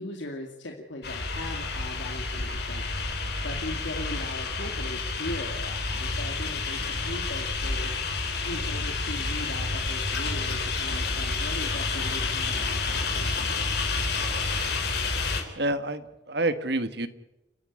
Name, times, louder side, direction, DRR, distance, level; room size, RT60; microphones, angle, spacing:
voice 1, 0.0-2.8 3.4-8.0 8.4-13.5, left 1 dB, 80° left, 2 dB, 2.3 m, -39 dB
sound 1, 1.0-15.4, left 3 dB, 60° left, 3.7 m, -29 dB
voice 2, 15.6-17.1, right 2 dB, 60° right, 10 dB, 1.5 m, -28 dB
30.0 x 10.5 x 9.8 m, 0.96 s
head